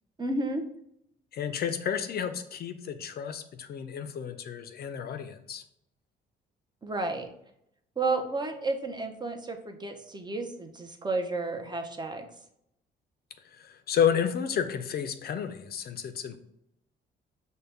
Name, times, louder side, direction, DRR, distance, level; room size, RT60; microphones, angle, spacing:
voice 1, 0.2-0.6 6.8-7.3 8.0-12.2, right 3 dB, 20° right, 5 dB, 0.5 m, -32 dB
voice 2, 1.3-5.6 13.5-16.4, left 8 dB, 50° left, 8 dB, 0.4 m, -31 dB
5.3 x 2.1 x 3.3 m, 0.77 s
cardioid pair, 90°, 20 cm